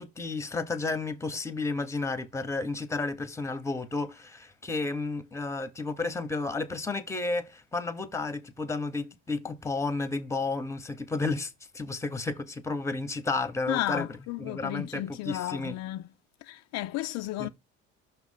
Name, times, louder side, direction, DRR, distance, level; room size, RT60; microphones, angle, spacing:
voice 1, 0.0-14.1 14.4-15.7 17.4-17.5, left 3 dB, 10° left, 0.8 m, -32 dB
voice 2, 13.7-16.1 16.4-17.5, left 15 dB, 60° left, 0.4 m, -33 dB
5.9 x 3.1 x 5.5 m
cardioid pair, 110°, 30 cm